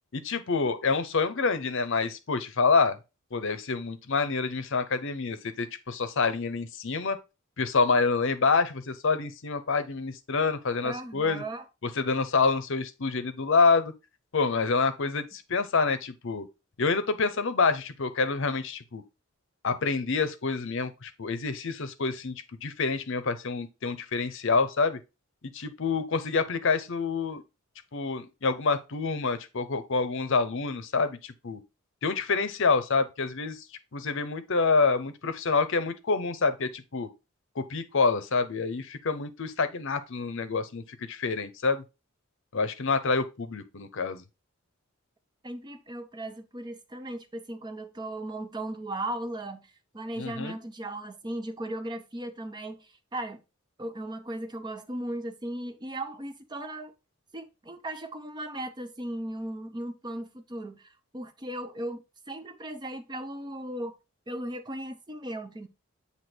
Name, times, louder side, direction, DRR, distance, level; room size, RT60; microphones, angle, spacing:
voice 1, 0.1-3.0 3.3-7.2 7.6-11.4 12.0-13.9 14.3-16.5 16.8-19.0 19.6-25.0 25.5-27.4 27.9-31.6 32.0-33.6 33.9-37.1 37.6-41.8 42.5-44.2 50.2-50.6, left 4 dB, 60° left, 0.7 m, -27 dB
voice 2, 10.8-11.7 45.4-53.4 53.8-56.9 57.3-63.9 64.3-65.7, right 1 dB, 20° right, 0.6 m, -37 dB
7.9 x 2.9 x 4.4 m
head